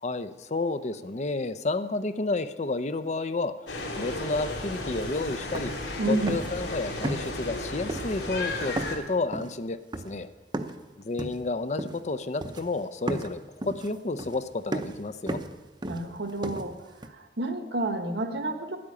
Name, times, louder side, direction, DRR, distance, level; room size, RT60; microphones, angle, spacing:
voice 1, 0.0-3.5 4.0-5.7 6.1-9.8 10.0-10.3 11.0-15.4, left 3 dB, 40° left, 12 dB, 0.6 m, -31 dB
sound 1, 3.7-9.0, left 2 dB, 85° left, 2.9 m, -34 dB
sound 2, 5.0-5.1 5.4-5.9 6.2-6.7 7.0-7.6 7.9-8.4 8.8-10.9 11.2-12.1 12.4-12.8 13.1-17.1, right 1 dB, 25° right, 0.7 m, -35 dB
voice 2, 6.0-6.4 15.8-16.8 17.0-18.8, right 2 dB, 75° right, 6 dB, 1.4 m, -30 dB
10.5 x 8.6 x 8.7 m, 1.1 s
head